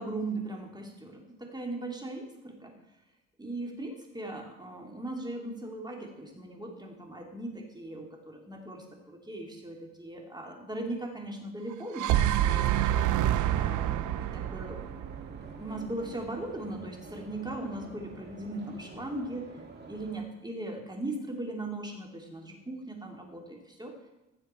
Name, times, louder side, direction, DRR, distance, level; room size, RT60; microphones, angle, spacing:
voice 1, 0.0-2.7 3.4-12.6 13.5-14.8 15.6-19.5 19.9-23.9, right 2 dB, 15° right, 1 dB, 3.0 m, -38 dB
sound 1, 11.7-15.9, right 12 dB, 75° right, 0.7 m, -27 dB
sound 2, 13.8-20.2, right 3 dB, 35° right, 2.3 m, -47 dB
16.0 x 7.3 x 4.5 m, 1.0 s
cardioid pair, 90°, 30 cm